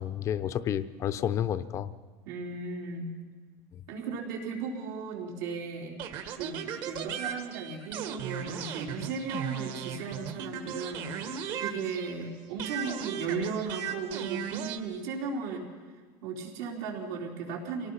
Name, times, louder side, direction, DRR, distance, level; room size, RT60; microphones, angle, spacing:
voice 1, 0.0-1.9 3.7-3.8, left 10 dB, 35° left, 14 dB, 0.7 m, -30 dB
voice 2, 2.3-3.2 3.9-6.0 6.3-11.2 11.6-15.7 16.2-17.9, right 4 dB, 85° right, -1 dB, 4.2 m, -36 dB
sound 1, 6.0-12.3 12.6-14.8, right 8 dB, 55° right, 1.5 m, -37 dB
25.0 x 18.0 x 5.8 m, 1.5 s
cardioid pair, 155°, 9 cm